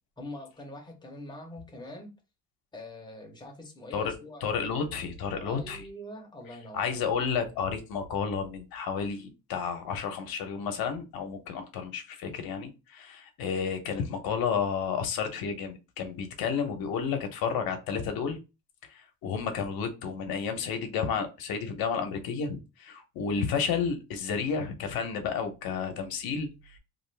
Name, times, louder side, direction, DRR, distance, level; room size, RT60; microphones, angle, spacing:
voice 1, 0.2-2.1 2.7-4.6 5.3-7.0, left 1 dB, 10° left, 0.7 m, -44 dB
voice 2, 4.4-5.8 6.7-18.4 18.9-26.5, left 6 dB, 70° left, 0.8 m, -31 dB
2.5 x 2.4 x 3.2 m
cardioid pair, 155°, 37 cm